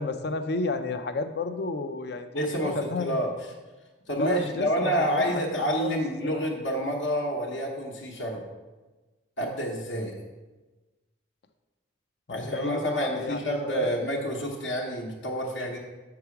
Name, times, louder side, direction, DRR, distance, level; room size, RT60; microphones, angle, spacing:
voice 1, 0.0-3.2 4.2-5.5 5.8-6.5 12.3-13.9, left 3 dB, 55° left, 9 dB, 0.5 m, -32 dB
voice 2, 2.3-3.3 4.1-8.4 9.4-10.1 12.3-15.8, equal, 70° left, -2 dB, 0.9 m, -28 dB
5.7 x 4.8 x 5.8 m, 1.2 s
head